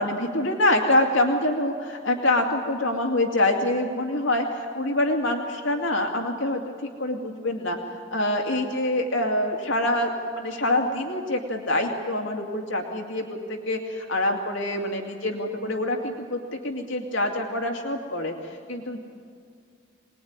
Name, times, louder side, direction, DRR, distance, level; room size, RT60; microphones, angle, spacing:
voice 1, 0.0-7.8 8.1-10.1 10.3-18.3 18.7-19.0, left 1 dB, 75° left, 2 dB, 2.5 m, -25 dB
24.5 x 20.0 x 9.6 m, 2.2 s
head